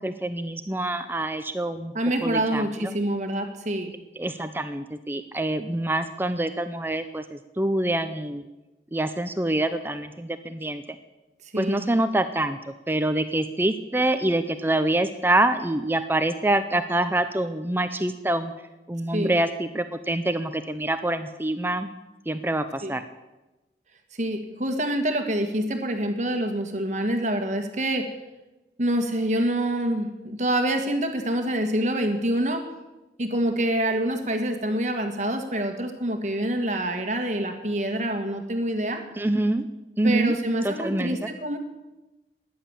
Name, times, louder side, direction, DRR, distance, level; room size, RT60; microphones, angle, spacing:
voice 1, 0.0-1.9 2.2-2.9 4.2-8.4 8.9-10.8 11.6-12.6 12.9-18.5 18.9-21.9 22.3-23.0 39.2-39.6 40.0-40.3 40.6-41.2, right 1 dB, 10° right, 10 dB, 0.6 m, -26 dB
voice 2, 1.9-3.9 11.5-11.8 19.1-19.3 22.8-22.9 24.1-28.1 28.8-32.6 33.2-39.0 40.0-41.6, right 1 dB, 40° right, 5 dB, 1.6 m, -26 dB
14.5 x 10.5 x 8.7 m, 1.1 s
head